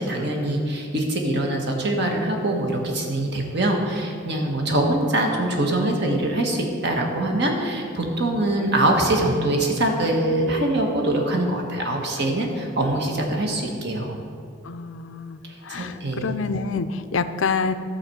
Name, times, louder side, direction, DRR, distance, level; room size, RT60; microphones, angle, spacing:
voice 1, 0.0-14.2 15.4-16.3, right 1 dB, 55° right, 2 dB, 1.4 m, -23 dB
voice 2, 12.3-12.7 14.6-17.7, left 5 dB, 75° left, 11 dB, 0.5 m, -28 dB
12.5 x 4.2 x 7.7 m, 2.3 s
head